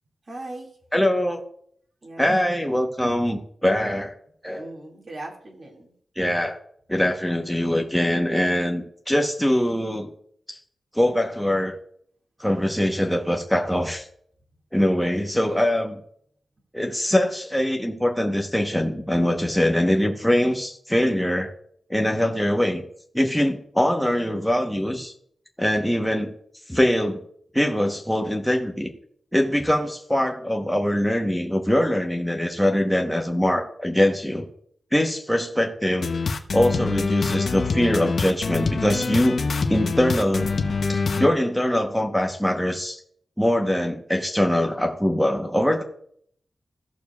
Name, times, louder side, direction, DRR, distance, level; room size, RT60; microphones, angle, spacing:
voice 1, 0.3-0.7 2.0-2.6 4.6-5.9, right 2 dB, 40° right, 0 dB, 2.1 m, -39 dB
voice 2, 0.9-1.4 2.2-4.1 4.4-4.7 6.2-6.6 6.9-10.1 10.5-10.6 10.9-11.8 12.4-14.0 14.7-16.0 16.7-21.5 21.9-22.8 23.1-25.1 25.6-26.3 26.7-27.2 27.5-28.9 29.3-34.4 34.9-36.1 36.5-40.5 40.9-43.0 43.4-45.8, left 1 dB, ahead, 2 dB, 1.0 m, -23 dB
sound 1, 36.0-41.3, left 4 dB, 60° left, 0.8 m, -25 dB
16.0 x 6.7 x 2.3 m, 0.64 s
wide cardioid pair, 140°, 0 cm